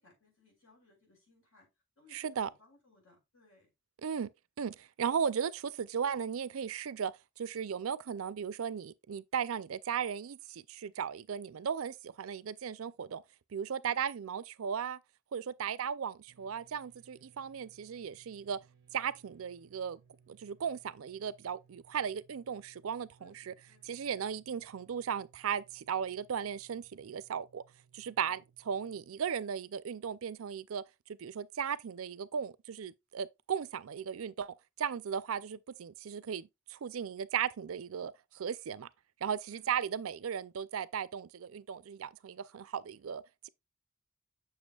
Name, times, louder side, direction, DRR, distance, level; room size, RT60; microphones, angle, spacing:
voice 1, 0.0-1.7 1.9-3.7 13.8-14.0 15.6-15.9 23.2-23.9 28.2-28.5 35.3-35.5 39.5-39.8, left 2 dB, 80° left, 4.8 m, -66 dB
voice 2, 2.1-2.5 4.0-4.3 4.6-13.2 13.5-15.0 15.3-18.6 18.9-20.0 20.3-23.5 23.9-27.6 27.9-28.4 28.7-38.9 39.2-43.5, right 7 dB, 90° right, 0.4 m, -36 dB
sound 1, 16.3-29.1, right 6 dB, 55° right, 1.1 m, -66 dB
7.2 x 6.7 x 2.3 m
head